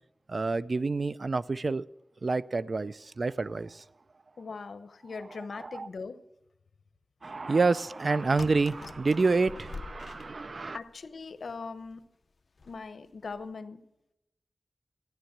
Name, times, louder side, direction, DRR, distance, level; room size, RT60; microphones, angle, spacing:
voice 1, 0.3-1.8 2.2-3.8 5.6-5.9 7.2-10.8, right 3 dB, 55° right, 0.4 m, -28 dB
voice 2, 4.4-6.2 10.7-12.0 12.7-13.8, left 4 dB, 90° left, 0.9 m, -40 dB
sound 1, 8.4-10.9 11.5-11.6 11.8-11.9 12.6-12.9 13.2-13.5, left 4 dB, 65° left, 0.6 m, -45 dB
14.5 x 10.5 x 7.3 m
wide cardioid pair, 95°, 0 cm